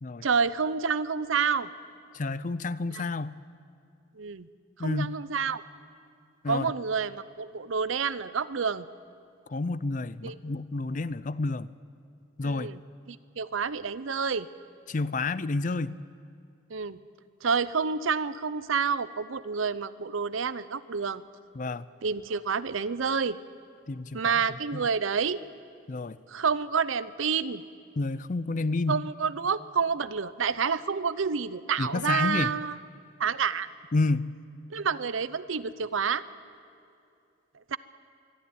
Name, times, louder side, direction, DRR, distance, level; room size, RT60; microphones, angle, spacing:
voice 1, 0.2-1.7 2.9-3.0 4.2-4.5 4.8-5.6 6.5-8.9 10.2-10.3 12.4-12.8 13.1-14.5 16.7-17.0 17.4-21.2 22.0-23.4 24.1-25.4 26.3-27.6 28.9-32.8 33.2-33.7 34.7-36.2 37.7-37.8, right 6 dB, 80° right, 16 dB, 0.7 m, -28 dB
voice 2, 2.1-3.3 4.8-5.1 6.4-6.7 9.5-11.7 12.4-12.7 14.9-16.0 21.5-21.9 23.9-24.2 24.7-24.8 25.9-26.2 28.0-29.0 31.8-32.5 33.9-34.3, left 3 dB, 40° left, 17 dB, 0.5 m, -29 dB
22.5 x 13.0 x 9.5 m, 2.5 s
head